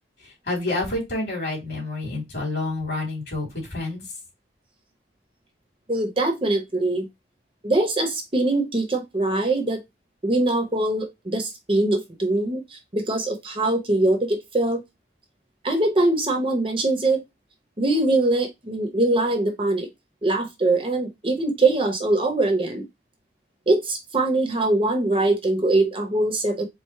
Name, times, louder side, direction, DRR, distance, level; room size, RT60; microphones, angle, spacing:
voice 1, 0.2-4.0, left 2 dB, 55° left, -1 dB, 2.6 m, -28 dB
voice 2, 5.9-7.1 7.6-9.8 10.2-14.8 15.6-17.2 17.8-19.9 20.2-22.8 23.7-26.7, right 2 dB, 30° right, 5 dB, 0.8 m, -22 dB
4.7 x 2.0 x 4.4 m, 0.19 s
head